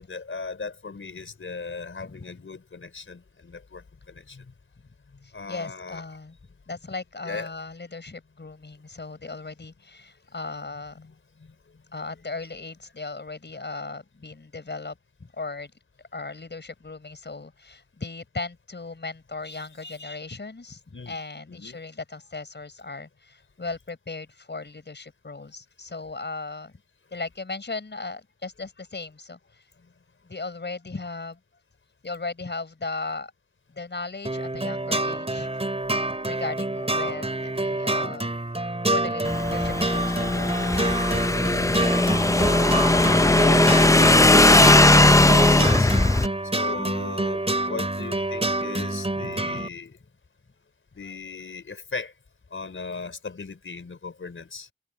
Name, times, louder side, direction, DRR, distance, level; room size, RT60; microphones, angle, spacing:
voice 1, 0.0-4.5 5.3-6.0 7.2-7.5 11.0-11.5 20.9-21.2 21.5-21.8 45.3-45.9 46.5-50.0 50.9-52.1 52.5-54.7, left 4 dB, 90° left, 4.6 m, -38 dB
voice 2, 2.0-2.4 5.2-6.4 6.7-11.0 11.9-15.7 16.1-26.7 27.1-29.6 30.2-31.4 32.0-33.3 33.7-35.5 36.3-38.3 38.9-41.0 49.2-49.7, left 3 dB, 60° left, 5.8 m, -37 dB
sound 1, 34.2-49.7, right 2 dB, 30° right, 4.6 m, -27 dB
Motorcycle / Engine, 39.3-46.3, left 2 dB, 15° left, 0.6 m, -18 dB
wide cardioid pair, 65°, 20 cm